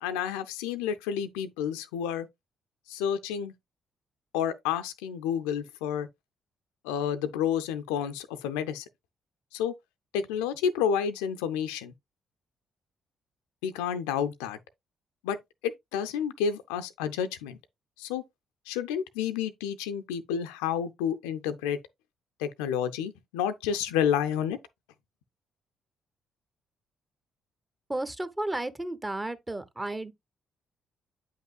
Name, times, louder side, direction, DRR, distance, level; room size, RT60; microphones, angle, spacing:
voice 1, 0.0-2.3 2.9-3.5 4.3-6.1 6.8-8.8 9.5-9.7 10.1-11.9 13.6-14.6 15.2-15.4 15.6-17.6 18.0-18.2 18.7-21.8 22.4-24.6, left 8 dB, 70° left, 0.4 m, -30 dB
voice 2, 27.9-30.1, right 1 dB, 15° right, 0.8 m, -33 dB
8.9 x 5.5 x 2.3 m
figure-of-eight pair, 40°, 0 cm